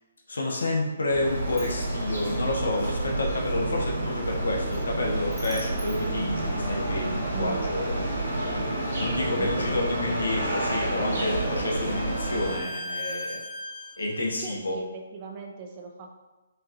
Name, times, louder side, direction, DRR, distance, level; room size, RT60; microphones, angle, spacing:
voice 1, 0.3-8.2 8.9-13.4 14.0-14.8, left 2 dB, 80° left, -1 dB, 0.8 m, -29 dB
Sliding door, 0.9-7.0, equal, 5° right, 1.0 m, -49 dB
sound 1, 1.1-12.6, right 1 dB, 85° right, 1.5 m, -29 dB
voice 2, 7.3-7.7 9.4-10.1 14.4-16.2, right 6 dB, 35° right, 1 dB, 0.5 m, -39 dB
Bowed string instrument, 11.1-14.3, left 1 dB, 35° left, 0.4 m, -39 dB
5.2 x 2.4 x 2.8 m, 1.1 s
figure-of-eight pair, 140°, 0 cm